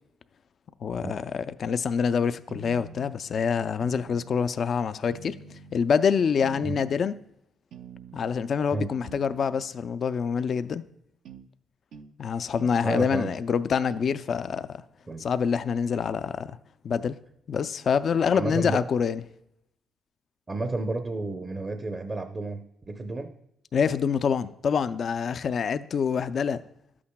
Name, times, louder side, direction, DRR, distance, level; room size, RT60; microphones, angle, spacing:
voice 1, 0.8-5.4 5.7-7.2 8.1-10.8 12.2-14.8 15.2-16.6 16.8-17.2 17.5-19.2 23.7-26.6, left 6 dB, 55° left, 0.4 m, -26 dB
sound 1, 2.5-3.2 3.8-4.5 5.1-5.8 6.4-7.1 7.7-8.4 9.0-9.7 11.3-11.5 11.9-12.1 12.6-12.8 13.2-13.4 13.9-14.1, right 6 dB, 75° right, 0.5 m, -45 dB
voice 2, 12.8-13.3 15.1-15.3 18.3-18.8 20.5-23.3, right 2 dB, 30° right, 0.6 m, -31 dB
12.0 x 8.5 x 2.2 m
cardioid pair, 90°, 0 cm